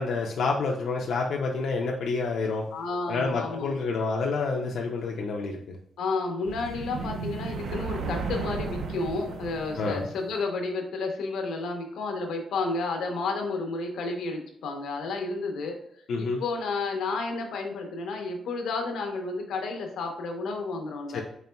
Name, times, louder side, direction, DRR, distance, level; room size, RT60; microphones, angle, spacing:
voice 1, 0.0-2.6 3.1-5.8 9.8-10.0 16.1-16.4 21.1-21.2, left 4 dB, 65° left, -1 dB, 0.4 m, -28 dB
voice 2, 2.7-3.8 6.0-15.8 16.2-21.2, left 3 dB, 90° left, 3 dB, 0.7 m, -31 dB
sound 1, 6.4-10.4, right 4 dB, 80° right, 0.5 m, -34 dB
4.1 x 3.7 x 2.2 m, 0.69 s
wide cardioid pair, 170°, 0 cm